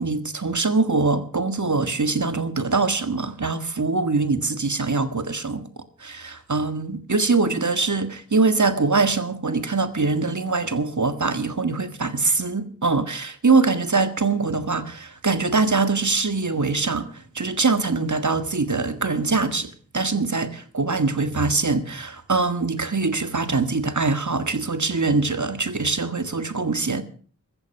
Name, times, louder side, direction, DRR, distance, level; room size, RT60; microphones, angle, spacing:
voice 1, 0.0-5.7 6.0-27.0, right 3 dB, 60° right, 1.8 m, -23 dB
15.0 x 14.0 x 5.8 m
wide cardioid pair, 45°, 34 cm